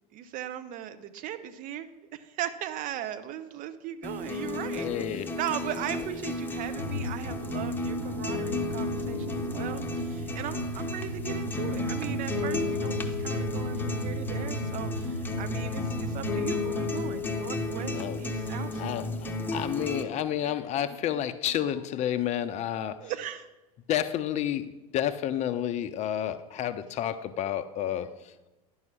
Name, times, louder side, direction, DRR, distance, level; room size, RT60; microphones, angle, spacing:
voice 1, 0.1-18.8 23.0-23.5, right 11 dB, 45° right, 11 dB, 0.9 m, -38 dB
sound 1, 4.0-20.0, left 2 dB, 10° left, 1.0 m, -33 dB
voice 2, 4.7-5.3 17.9-18.2 18.8-23.1 23.9-28.3, left 10 dB, 35° left, 11 dB, 0.5 m, -30 dB
sound 2, 6.7-18.9, equal, 75° right, 2.4 m, -37 dB
10.5 x 5.5 x 6.2 m, 1.0 s
figure-of-eight pair, 80°, 20 cm